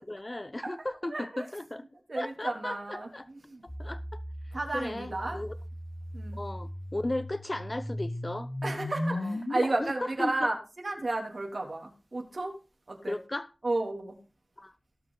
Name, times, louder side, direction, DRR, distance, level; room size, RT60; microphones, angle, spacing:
voice 1, 0.1-1.8 2.2-3.3 3.8-4.2 4.7-5.5 6.3-8.5 9.1-9.4 9.8-10.5 13.0-13.5 14.6-14.7, left 1 dB, 30° left, 0.8 m, -36 dB
voice 2, 1.1-1.4 2.1-3.6 4.5-5.4 6.1-6.4 8.6-10.5 10.8-12.5 12.9-13.1 13.6-14.1, right 2 dB, 60° right, 3.4 m, -32 dB
sound 1, 3.7-9.6, left 1 dB, 70° left, 3.2 m, -37 dB
18.0 x 6.2 x 4.0 m
wide cardioid pair, 70°, 0 cm